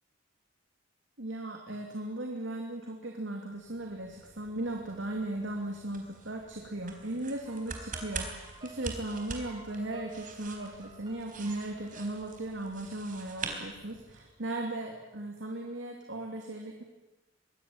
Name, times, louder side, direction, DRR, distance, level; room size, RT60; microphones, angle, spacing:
voice 1, 1.2-16.8, right 1 dB, 75° right, 2 dB, 2.8 m, -37 dB
sound 1, 3.6-14.4, right 4 dB, 45° right, 3.9 m, -44 dB
sound 2, 7.4-12.5, right 4 dB, 25° right, 6.3 m, -52 dB
23.0 x 17.5 x 9.3 m, 1.1 s
head